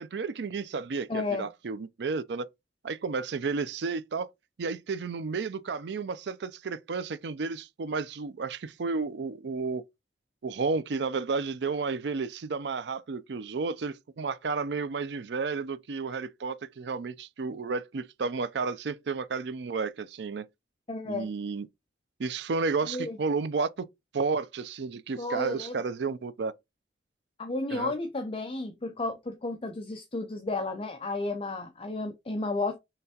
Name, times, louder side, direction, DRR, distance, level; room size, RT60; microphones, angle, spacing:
voice 1, 0.0-2.5 2.8-4.3 4.6-9.8 10.4-20.4 21.1-21.7 22.2-23.7 24.1-26.5 27.7-27.9, right 4 dB, 70° right, 0.5 m, -32 dB
voice 2, 1.1-1.5 20.9-21.3 22.9-23.2 25.2-25.8 27.4-32.8, left 2 dB, 30° left, 0.6 m, -32 dB
5.6 x 3.3 x 2.8 m
head